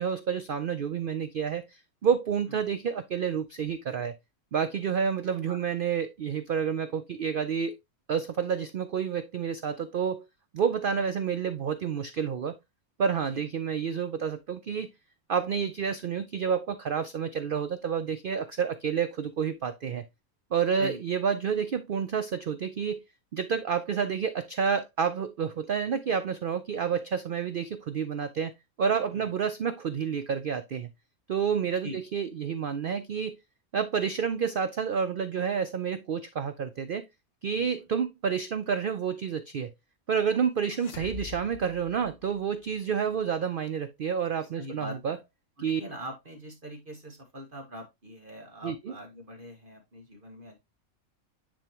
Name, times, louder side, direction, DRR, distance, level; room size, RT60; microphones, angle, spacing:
voice 1, 0.0-4.1 4.5-7.7 8.1-10.3 10.5-12.6 13.0-14.9 15.3-20.0 20.5-23.0 23.3-28.5 28.8-30.9 31.3-33.4 33.7-37.0 37.4-39.7 40.1-45.2 45.6-45.8 48.6-48.9, right 7 dB, 90° right, 0.4 m, -29 dB
sound 1, 40.7-42.7, left 7 dB, 55° left, 0.8 m, -44 dB
voice 2, 44.4-45.2 45.6-50.6, equal, 35° right, 1.6 m, -42 dB
9.9 x 3.5 x 2.9 m
omnidirectional pair, 1.5 m